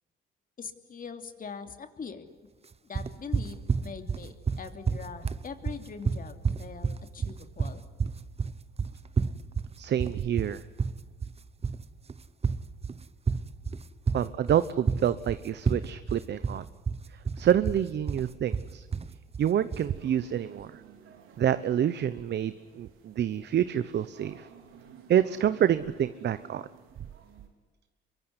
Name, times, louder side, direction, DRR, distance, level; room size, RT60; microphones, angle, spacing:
voice 1, 0.6-2.3 2.8-7.8, left 6 dB, 45° left, 7 dB, 2.9 m, -42 dB
sound 1, 2.9-19.9, right 5 dB, 30° right, 1.2 m, -30 dB
voice 2, 9.8-10.6 14.1-16.7 17.1-18.9 19.4-20.8 21.4-24.5 25.1-26.6, right 10 dB, 60° right, 13 dB, 1.0 m, -27 dB
sound 2, 19.7-27.5, right 7 dB, 90° right, 4.3 m, -53 dB
25.5 x 23.0 x 9.8 m, 1.3 s
cardioid pair, 90°, 20 cm